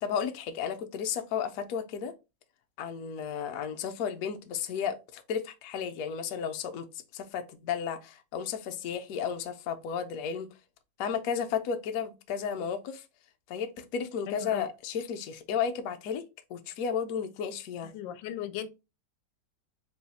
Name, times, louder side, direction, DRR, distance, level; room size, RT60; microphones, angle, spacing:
voice 1, 0.0-2.1 2.8-6.9 7.1-10.5 11.0-13.0 13.5-16.2 16.5-17.9, left 7 dB, 65° left, 0.9 m, -33 dB
voice 2, 14.3-14.6 17.9-18.7, left 11 dB, 90° left, 1.3 m, -37 dB
4.0 x 2.3 x 4.0 m
omnidirectional pair, 2.0 m